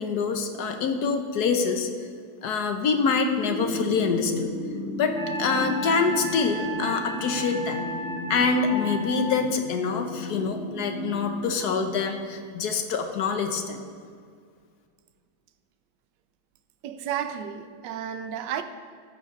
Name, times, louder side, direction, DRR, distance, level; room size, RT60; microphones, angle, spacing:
voice 1, 0.0-1.9 2.4-4.5 5.0-7.8 8.3-13.8, left 5 dB, 60° left, 1.2 m, -25 dB
sound 1, 3.4-12.4, left 1 dB, 80° left, 2.0 m, -34 dB
Wind instrument woodwind instrument, 5.1-9.4, right 1 dB, 20° left, 0.8 m, -34 dB
voice 2, 16.8-18.6, right 9 dB, 70° right, 1.2 m, -32 dB
13.5 x 6.3 x 5.3 m
omnidirectional pair, 2.2 m